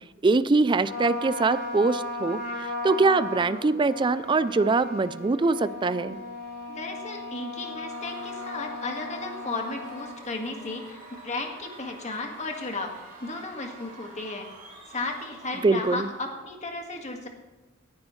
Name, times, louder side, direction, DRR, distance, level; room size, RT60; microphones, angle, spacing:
voice 1, 0.2-6.2 15.6-16.1, right 3 dB, 25° right, 15 dB, 0.3 m, -23 dB
Trumpet, 0.8-10.2, left 2 dB, 55° left, 3.3 m, -36 dB
voice 2, 6.7-11.0 11.2-12.9 13.2-14.5 14.9-17.3, left 3 dB, 35° left, 3 dB, 1.7 m, -34 dB
Screaming / Cheering / Crowd, 7.8-16.4, right 1 dB, 45° right, 4.3 m, -47 dB
18.0 x 10.5 x 3.2 m, 1.2 s
head